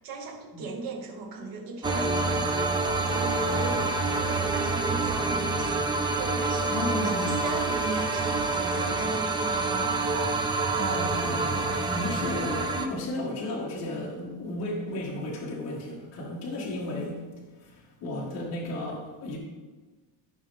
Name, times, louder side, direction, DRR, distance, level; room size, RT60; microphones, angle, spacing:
voice 1, 0.0-10.0, right 3 dB, 60° right, 2 dB, 1.7 m, -37 dB
sound 1, 1.8-12.9, right 3 dB, 10° right, 0.4 m, -27 dB
voice 2, 6.7-7.3 10.7-17.3 17.6-19.4, left 1 dB, 40° left, -4 dB, 1.8 m, -34 dB
15.0 x 5.6 x 3.6 m, 1.3 s
cardioid pair, 175°, 39 cm